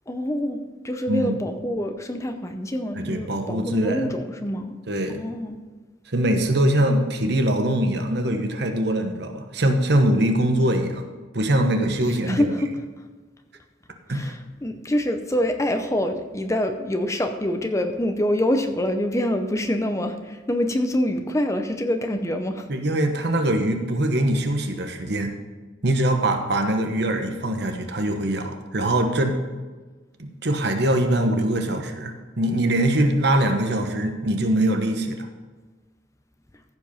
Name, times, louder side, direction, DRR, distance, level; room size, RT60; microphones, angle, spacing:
voice 1, 0.1-4.7 5.1-5.6 12.3-12.7 14.1-22.7, left 1 dB, 15° left, 6 dB, 0.6 m, -26 dB
voice 2, 1.1-1.4 3.0-4.1 4.9-5.2 6.1-11.0 11.3-12.5 14.1-14.3 22.7-25.3 25.8-29.4 30.2-35.3, right 1 dB, 55° right, 5 dB, 1.1 m, -22 dB
15.0 x 5.2 x 5.5 m, 1.3 s
head